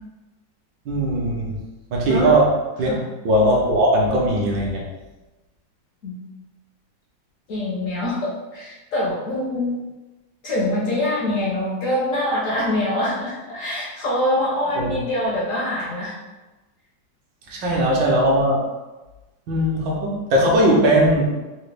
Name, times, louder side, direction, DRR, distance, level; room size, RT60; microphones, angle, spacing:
voice 1, 0.9-1.6 1.9-2.5 2.8-2.9 3.2-4.8 14.7-14.9 17.5-18.6 19.5-21.3, right 1 dB, 70° right, -2 dB, 1.3 m, -19 dB
voice 2, 7.5-9.7 10.4-16.2 17.5-17.8, left 1 dB, 70° left, -4 dB, 0.7 m, -24 dB
3.8 x 2.1 x 3.2 m, 1.1 s
omnidirectional pair, 2.1 m